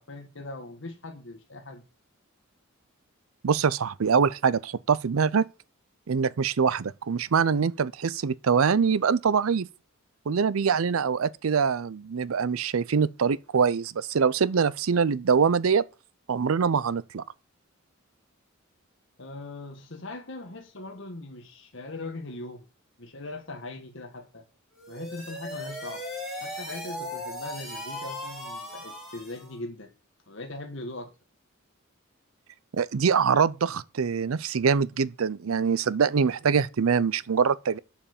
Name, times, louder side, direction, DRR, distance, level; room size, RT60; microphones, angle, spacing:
voice 1, 0.0-1.8 19.2-22.7 23.0-24.4 24.9-26.1 26.4-29.9 30.3-31.1, left 2 dB, 60° left, 1.5 m, -40 dB
voice 2, 3.4-5.5 6.1-9.7 10.3-15.8 16.3-17.2 32.7-37.8, right 6 dB, 85° right, 0.5 m, -24 dB
sound 1, 24.7-29.6, left 1 dB, ahead, 3.4 m, -38 dB
7.8 x 7.0 x 7.1 m
head